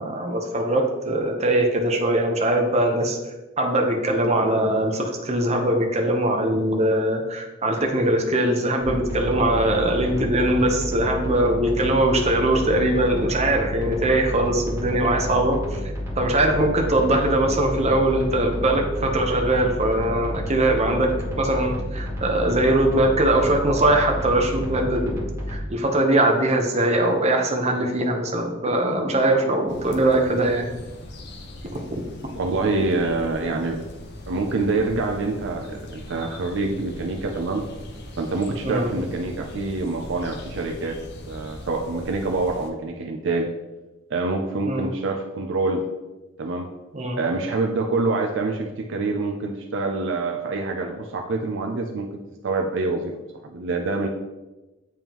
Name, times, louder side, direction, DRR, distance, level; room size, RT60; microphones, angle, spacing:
voice 1, 0.0-3.2 3.6-15.8 16.2-25.2 25.5-30.7 38.6-38.9 44.6-44.9 46.9-47.2, right 1 dB, 35° right, 2 dB, 0.8 m, -21 dB
sound 1, 8.8-25.6, equal, 15° right, 1.6 m, -30 dB
sound 2, 29.7-42.7, left 1 dB, 60° left, 0.8 m, -40 dB
voice 2, 32.4-33.8 34.3-37.6 38.2-41.0 41.3-43.5 44.1-45.8 46.4-46.7 47.2-53.1 53.4-54.1, right 3 dB, 65° right, 3 dB, 0.5 m, -26 dB
9.0 x 3.5 x 3.0 m, 1.1 s
head